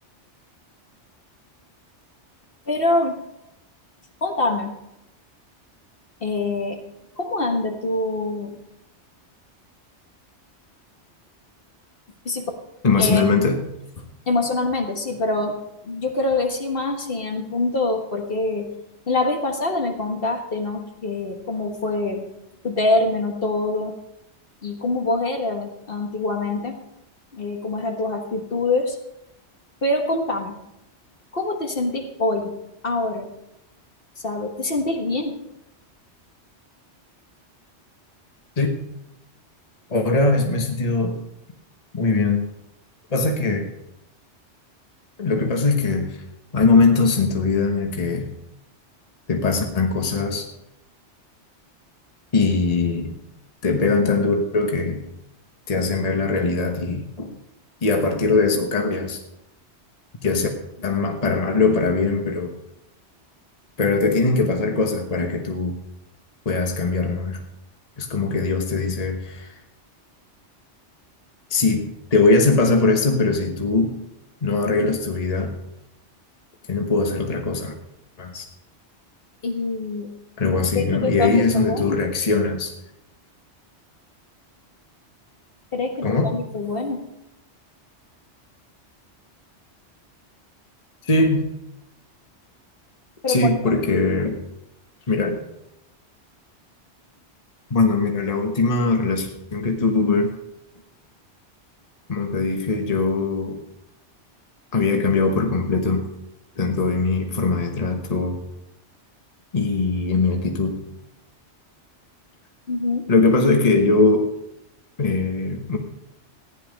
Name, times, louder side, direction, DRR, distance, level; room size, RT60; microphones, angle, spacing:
voice 1, 2.7-3.2 4.2-4.7 6.2-6.8 7.2-8.6 12.2-12.5 13.0-13.2 14.0-15.6 15.8-18.7 19.1-22.3 22.6-23.9 24.6-26.8 27.3-29.0 29.8-30.6 31.3-32.5 32.8-33.3 34.2-35.4 79.4-80.1 80.4-82.0 85.7-87.0 93.2-93.8 112.7-113.1, left 2 dB, 55° left, 3 dB, 1.7 m, -25 dB
voice 2, 12.8-13.6 38.6-38.8 39.9-41.2 41.9-42.4 43.1-43.7 45.2-46.2 46.5-48.3 49.3-50.4 52.3-53.1 53.6-55.0 55.7-57.3 57.8-59.2 60.2-60.5 60.8-62.5 63.8-65.8 66.4-67.4 68.0-69.5 71.5-74.0 74.4-75.6 76.7-77.7 78.2-78.4 80.4-82.7 86.0-86.3 91.0-91.5 93.3-94.4 95.1-95.4 97.7-100.3 102.1-103.6 104.7-106.1 106.6-108.4 109.5-110.8 113.1-114.3 115.0-115.8, left 3 dB, 35° left, 3 dB, 1.3 m, -21 dB
15.5 x 10.0 x 5.2 m, 0.87 s
omnidirectional pair, 1.2 m